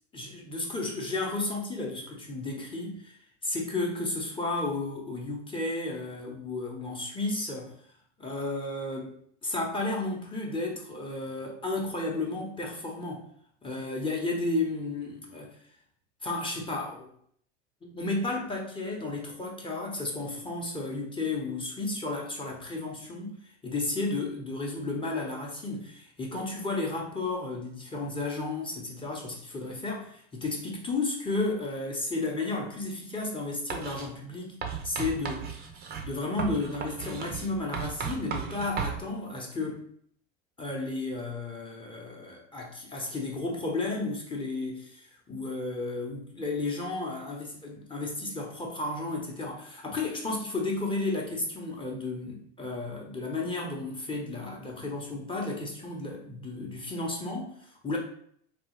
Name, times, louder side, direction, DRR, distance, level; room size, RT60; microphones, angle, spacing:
voice 1, 0.1-7.7 8.2-9.1 9.4-13.3 13.6-15.5 16.2-17.1 17.8-23.3 23.6-34.6 34.8-35.5 36.0-39.8 40.6-58.0, left 2 dB, 15° left, -1 dB, 0.8 m, -33 dB
Writing, 33.7-34.1 34.6-39.0, right 6 dB, 30° right, 0.6 m, -35 dB
3.3 x 2.3 x 3.1 m, 0.63 s
hypercardioid pair, 100°, 34 cm